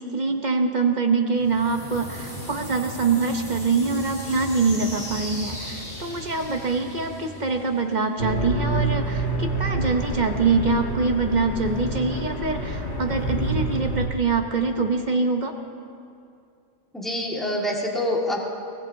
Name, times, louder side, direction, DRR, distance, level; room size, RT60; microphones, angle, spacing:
voice 1, 0.0-15.5, right 4 dB, 40° right, 4 dB, 1.0 m, -24 dB
sound 1, 1.3-8.2, equal, 25° left, 3.1 m, -37 dB
sound 2, 8.2-14.1, right 2 dB, 60° left, 2.0 m, -27 dB
voice 2, 16.9-18.4, left 1 dB, ahead, -3 dB, 1.9 m, -26 dB
23.5 x 18.5 x 2.8 m, 2.4 s
omnidirectional pair, 1.3 m